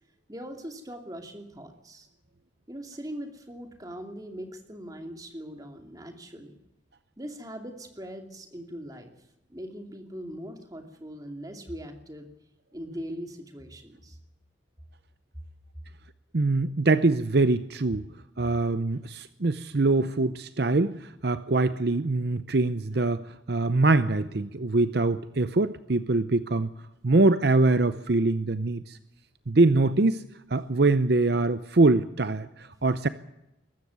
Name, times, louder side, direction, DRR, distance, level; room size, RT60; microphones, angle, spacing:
voice 1, 0.3-2.1 2.7-6.5 7.2-9.1 9.5-12.3 12.7-14.2, equal, 20° right, 5 dB, 2.6 m, -40 dB
voice 2, 16.3-18.0 18.4-26.7 27.0-29.0 29.5-30.2 30.5-33.1, right 2 dB, 55° right, 13 dB, 0.7 m, -23 dB
22.0 x 13.0 x 9.4 m, 0.89 s
head